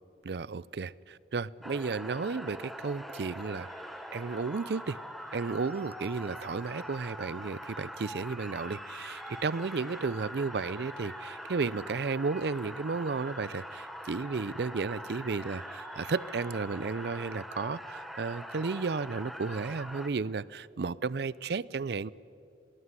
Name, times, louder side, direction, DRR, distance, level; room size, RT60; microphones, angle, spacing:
voice 1, 0.2-3.7 4.1-5.0 5.3-22.1, right 4 dB, 60° right, 22 dB, 0.5 m, -33 dB
sound 1, 1.6-20.1, equal, ahead, 1.1 m, -43 dB
sound 2, 2.9-17.3, left 1 dB, 35° left, 6.6 m, -62 dB
21.0 x 19.0 x 9.6 m, 2.7 s
head